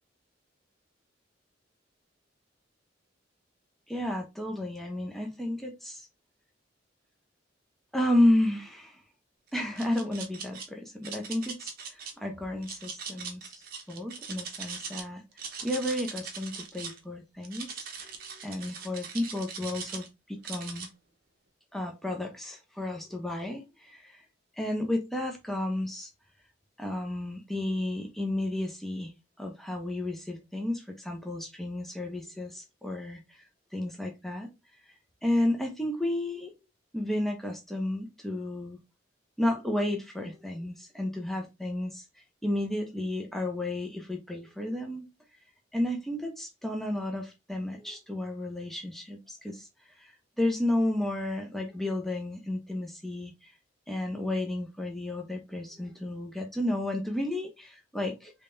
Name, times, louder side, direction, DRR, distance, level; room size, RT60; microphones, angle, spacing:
voice 1, 3.9-6.1 7.9-9.0 9.5-13.6 13.9-15.2 15.6-20.9 21.7-24.2 24.6-26.1 26.8-29.1 29.4-33.4 33.7-34.5 35.2-36.5 36.9-38.8 39.4-42.0 42.4-45.1 45.7-49.7 50.0-53.5 53.9-58.3, left 1 dB, ahead, 2 dB, 0.6 m, -32 dB
sound 1, 9.5-10.7 11.0-12.1 12.6-15.0 15.3-17.0 17.4-20.1 20.4-20.9, right 6 dB, 55° right, 0.8 m, -40 dB
3.6 x 3.3 x 2.5 m, 0.23 s
head